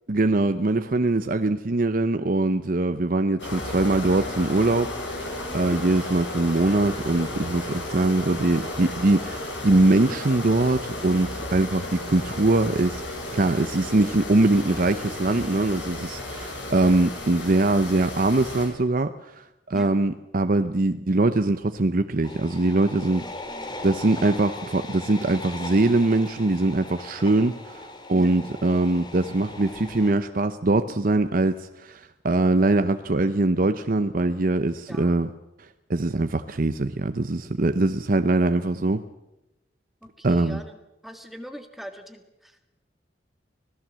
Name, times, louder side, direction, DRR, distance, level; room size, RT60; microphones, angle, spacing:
voice 1, 0.1-13.0 13.3-19.1 19.7-23.2 23.8-35.3 35.9-39.0 40.2-40.6, right 2 dB, 50° right, 9 dB, 0.7 m, -22 dB
sound 1, 3.4-18.7, left 1 dB, 90° left, 6.8 m, -34 dB
sound 2, 22.2-30.1, left 2 dB, 25° left, 2.5 m, -39 dB
voice 2, 23.1-23.8 28.1-28.4 34.9-35.2 40.0-42.7, equal, ahead, 6 dB, 1.7 m, -42 dB
25.5 x 17.0 x 7.5 m, 0.94 s
head